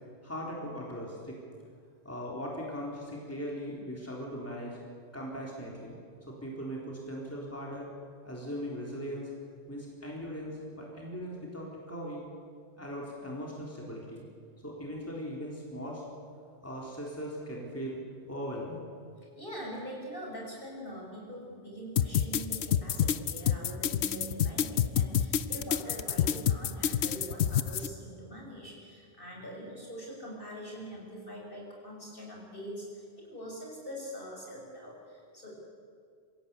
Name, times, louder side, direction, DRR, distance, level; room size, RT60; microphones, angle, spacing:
voice 1, 0.2-1.4 2.0-4.8 5.1-7.9 8.2-9.3 9.7-12.3 12.8-14.3 14.6-16.0 16.6-18.0 18.2-18.8, equal, 15° left, -3 dB, 4.0 m, -39 dB
voice 2, 19.4-35.5, equal, 55° left, -2 dB, 6.7 m, -43 dB
sound 1, 22.0-27.9, left 9 dB, 85° left, 1.0 m, -27 dB
26.5 x 16.5 x 8.6 m, 2.2 s
omnidirectional pair, 1.1 m